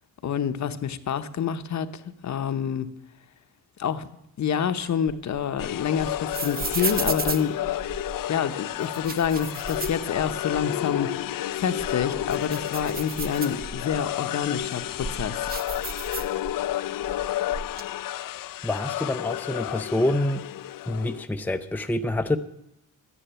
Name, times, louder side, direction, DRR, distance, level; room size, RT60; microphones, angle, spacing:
voice 1, 0.2-2.9 3.8-4.1 4.4-7.6 8.3-11.1 11.6-15.5, left 8 dB, 60° left, 11 dB, 0.9 m, -27 dB
sound 1, 4.8-8.2 8.8-10.7 11.0-11.1 11.6-14.0 14.6-16.7 17.0-17.8, right 4 dB, 30° right, 0.8 m, -34 dB
sound 2, 5.6-21.2, left 13 dB, 80° left, 0.5 m, -31 dB
voice 2, 18.6-20.4 20.9-22.4, left 1 dB, 5° left, 8 dB, 0.5 m, -26 dB
12.5 x 10.0 x 9.0 m, 0.82 s
wide cardioid pair, 145°, 33 cm